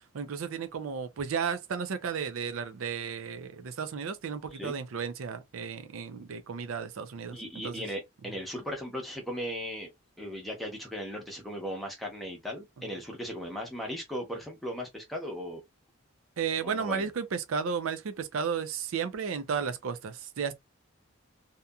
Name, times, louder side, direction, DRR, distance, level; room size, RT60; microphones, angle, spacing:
voice 1, 0.0-7.4 7.6-7.8 16.4-20.5, right 6 dB, 75° right, 0.4 m, -33 dB
voice 2, 7.3-9.9 10.2-15.6 16.6-17.1, equal, ahead, 0.8 m, -37 dB
2.8 x 2.5 x 2.2 m
head